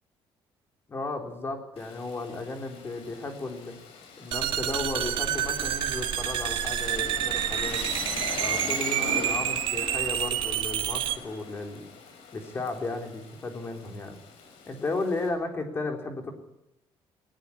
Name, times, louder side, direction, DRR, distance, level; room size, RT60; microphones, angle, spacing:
voice 1, 0.9-3.8 4.2-7.8 8.4-11.8 12.3-14.2 14.7-16.3, left 3 dB, 25° left, 4 dB, 3.9 m, -34 dB
Rain, 1.8-15.3, left 4 dB, 90° left, 6.4 m, -41 dB
sound 1, 4.3-11.2, right 11 dB, 60° right, 2.0 m, -28 dB
19.5 x 19.5 x 9.9 m, 0.81 s
cardioid pair, 160°, 9 cm